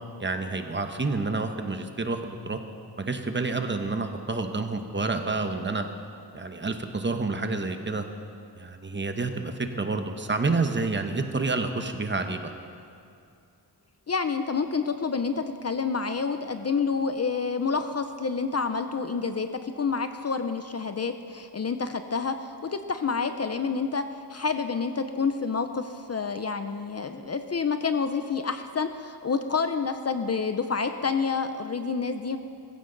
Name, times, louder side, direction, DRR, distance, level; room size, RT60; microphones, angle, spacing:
voice 1, 0.2-2.6 3.0-5.8 6.3-8.0 8.6-12.5, right 3 dB, 25° right, 6 dB, 1.0 m, -29 dB
voice 2, 14.1-32.4, left 5 dB, 35° left, 8 dB, 0.6 m, -28 dB
21.5 x 15.5 x 3.9 m, 2.5 s
wide cardioid pair, 155°, 42 cm